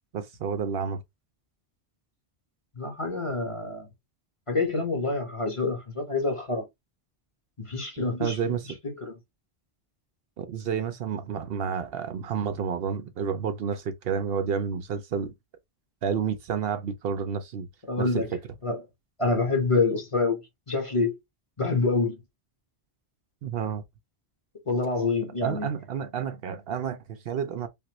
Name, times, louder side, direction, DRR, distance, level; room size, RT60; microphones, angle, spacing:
voice 1, 0.1-1.0 8.2-8.6 10.4-15.3 16.0-17.7 18.0-18.1 23.4-23.8 25.4-27.7, right 7 dB, 70° right, 0.7 m, -30 dB
voice 2, 2.8-3.9 4.5-6.6 7.6-8.4 9.0-9.2 17.9-18.3 18.6-18.8 19.2-20.4 20.7-21.1 21.6-22.2 24.7-25.7, left 3 dB, 30° left, 1.1 m, -26 dB
3.4 x 2.5 x 2.9 m
omnidirectional pair, 1.1 m